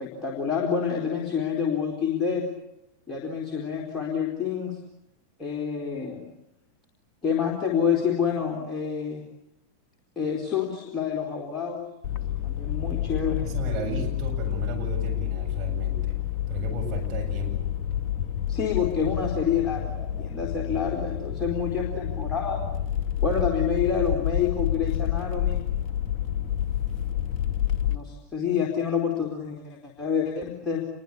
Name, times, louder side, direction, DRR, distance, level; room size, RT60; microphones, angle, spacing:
voice 1, 0.0-2.5 3.1-4.8 5.4-6.3 7.2-9.2 10.2-11.8 12.4-13.5 18.5-22.7 23.2-25.6 27.9-30.8, left 7 dB, 15° left, -1 dB, 4.0 m, -28 dB
sound 1, 12.0-27.9, left 11 dB, 35° left, 1.9 m, -29 dB
voice 2, 13.4-16.2 16.5-17.7, right 4 dB, 35° right, 1 dB, 7.9 m, -34 dB
27.5 x 23.0 x 8.5 m, 0.85 s
figure-of-eight pair, 90°, 0 cm